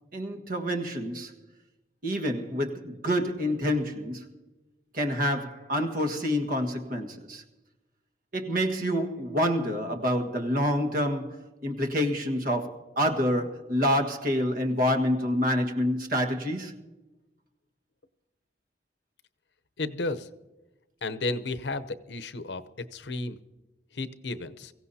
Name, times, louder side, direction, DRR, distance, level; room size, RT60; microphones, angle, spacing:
voice 1, 0.1-1.3 2.0-4.3 4.9-7.4 8.3-16.7, equal, 55° right, 1.6 m, -27 dB
voice 2, 19.8-20.3 21.0-23.4 23.9-24.7, left 2 dB, 85° left, 0.8 m, -33 dB
23.5 x 16.0 x 2.8 m
head